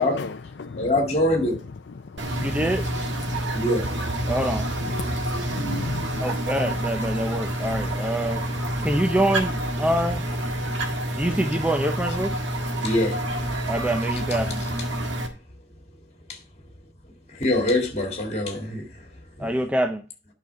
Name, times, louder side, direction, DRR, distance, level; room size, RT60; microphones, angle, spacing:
voice 1, 0.0-0.9 1.9-2.7 3.2-3.6 4.3-4.4 4.8-6.5 7.1-8.9, left 4 dB, 65° left, 0.5 m, -37 dB
voice 2, 0.8-1.6 3.5-3.9 12.8-13.2 16.3-16.4 17.3-19.1 19.4-19.5, left 1 dB, 35° left, 2.0 m, -24 dB
sound 1, 2.2-15.3, right 1 dB, 75° right, 1.7 m, -28 dB
voice 3, 2.4-2.8 4.3-4.7 6.2-8.4 8.8-10.2 11.2-12.4 13.7-14.6 19.4-20.0, right 1 dB, 5° right, 0.5 m, -25 dB
9.0 x 5.8 x 4.6 m
head